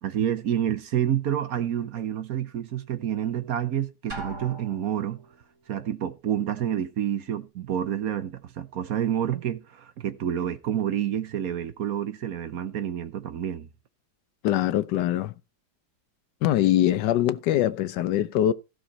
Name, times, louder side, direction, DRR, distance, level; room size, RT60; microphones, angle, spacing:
voice 1, 0.0-5.2 5.7-13.7, right 10 dB, 60° right, 1.2 m, -28 dB
Drum, 4.1-5.3, right 2 dB, 45° right, 3.3 m, -39 dB
voice 2, 14.4-15.3 16.4-18.5, left 12 dB, 80° left, 1.3 m, -23 dB
15.5 x 6.1 x 4.1 m
omnidirectional pair, 1.8 m